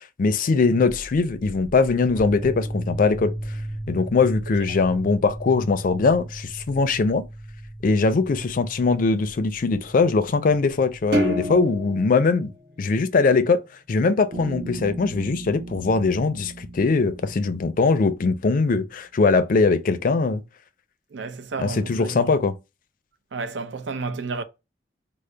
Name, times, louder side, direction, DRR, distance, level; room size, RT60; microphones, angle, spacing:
voice 1, 0.0-3.3 3.9-7.3 7.8-12.5 12.8-13.6 13.9-20.4 21.6-22.5, left 4 dB, 50° left, 0.4 m, -21 dB
sound 1, 0.8-11.8, right 1 dB, 15° right, 1.0 m, -36 dB
sound 2, 11.1-13.7, equal, 60° right, 1.0 m, -28 dB
Bass guitar, 14.3-18.4, right 2 dB, 35° right, 0.5 m, -38 dB
voice 2, 21.1-22.4 23.3-24.4, right 4 dB, 85° right, 0.5 m, -31 dB
3.8 x 2.0 x 3.2 m
head